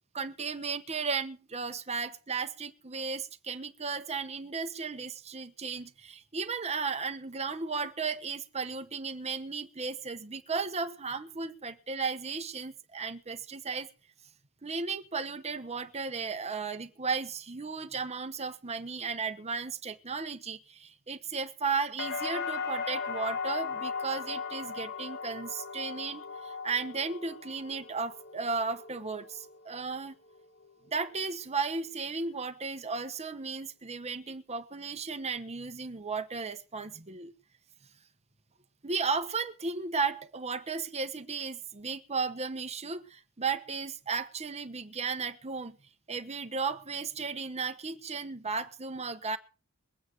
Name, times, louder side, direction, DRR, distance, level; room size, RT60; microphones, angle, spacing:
voice 1, 0.1-13.9 14.6-30.1 30.9-37.3 38.8-45.8 46.1-49.4, right 4 dB, 30° right, 1.1 m, -35 dB
sound 1, 22.0-29.9 30.3-30.9, left 5 dB, 50° left, 1.1 m, -38 dB
21.5 x 9.1 x 4.7 m
head